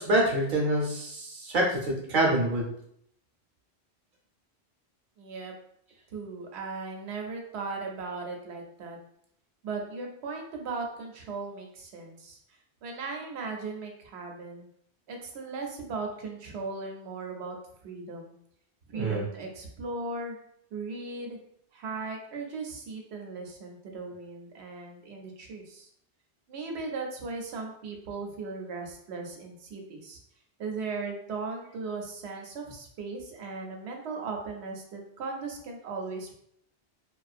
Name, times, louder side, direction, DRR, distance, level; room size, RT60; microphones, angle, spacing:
voice 1, 0.0-2.7 18.9-19.2, right 1 dB, 55° right, -1 dB, 0.8 m, -26 dB
voice 2, 5.2-5.5 6.1-9.0 9.6-12.4 12.8-14.7 15.1-17.6 17.8-18.4 18.9-20.4 20.7-21.4 21.7-25.9 26.5-30.2 30.6-36.3, right 4 dB, 85° right, 2 dB, 0.9 m, -37 dB
2.5 x 2.2 x 2.4 m, 0.69 s
omnidirectional pair, 1.1 m